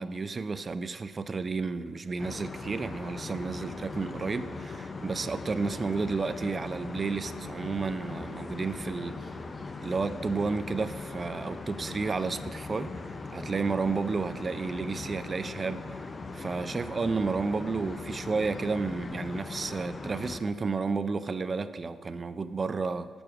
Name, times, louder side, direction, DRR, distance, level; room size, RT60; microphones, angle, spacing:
voice 1, 0.0-9.3 9.8-12.9 13.3-16.0 16.3-23.1, right 4 dB, 35° right, 0.4 m, -31 dB
sound 1, 2.2-20.4, left 3 dB, 30° left, 0.6 m, -40 dB
7.0 x 6.0 x 6.0 m
cardioid pair, 90°, 0 cm